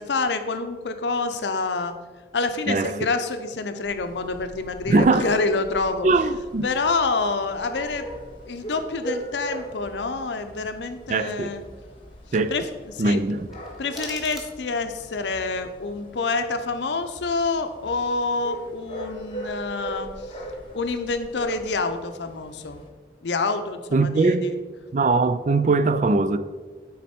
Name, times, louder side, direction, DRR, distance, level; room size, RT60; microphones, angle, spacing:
voice 1, 0.0-1.9 2.3-6.1 6.6-8.1 8.5-11.6 12.5-12.6 12.9-13.2 13.8-20.1 20.7-22.8 23.2-24.6, left 3 dB, 85° left, 0.6 m, -27 dB
voice 2, 2.7-3.0 4.9-5.4 6.0-6.7 11.1-11.5 12.3-12.6 13.0-13.5 23.9-24.5 24.9-26.4, right 3 dB, 45° right, 0.3 m, -21 dB
sound 1, 3.8-22.9, right 1 dB, 30° left, 1.0 m, -40 dB
sound 2, 13.5-15.0, equal, ahead, 0.9 m, -41 dB
9.4 x 4.1 x 4.3 m
head